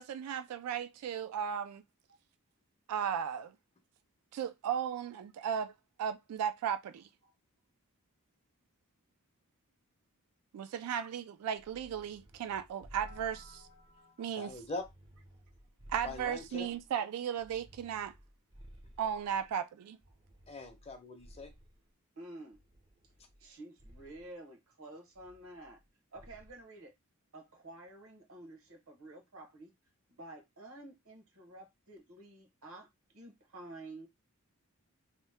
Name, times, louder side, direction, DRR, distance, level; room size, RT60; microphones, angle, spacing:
voice 1, 0.0-1.8 2.9-3.5 4.3-5.7 6.0-7.1 10.5-13.7 14.2-14.6 15.9-18.1 19.0-20.0, right 8 dB, 90° right, 0.3 m, -36 dB
sound 1, 11.5-14.0 14.4-16.9 17.4-19.5 20.0-21.9 22.5-23.5 23.8-24.3 25.1-25.9 26.2-26.6, equal, 20° right, 0.5 m, -56 dB
voice 2, 13.0-14.9 16.0-16.7 20.5-21.5, left 3 dB, 25° left, 0.5 m, -44 dB
voice 3, 22.2-22.6 23.4-25.8 26.1-26.9 27.3-29.7 30.1-34.1, right 2 dB, 70° right, 1.0 m, -50 dB
2.9 x 2.1 x 3.4 m
head